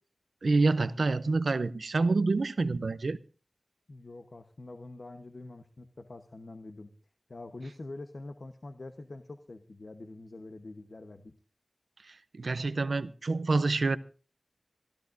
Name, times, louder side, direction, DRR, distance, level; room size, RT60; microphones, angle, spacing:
voice 1, 0.4-3.2 12.4-14.0, right 3 dB, 85° right, 0.6 m, -27 dB
voice 2, 3.9-6.9 7.3-11.3, left 2 dB, 65° left, 1.0 m, -45 dB
27.0 x 13.5 x 2.6 m
wide cardioid pair, 55°, 0 cm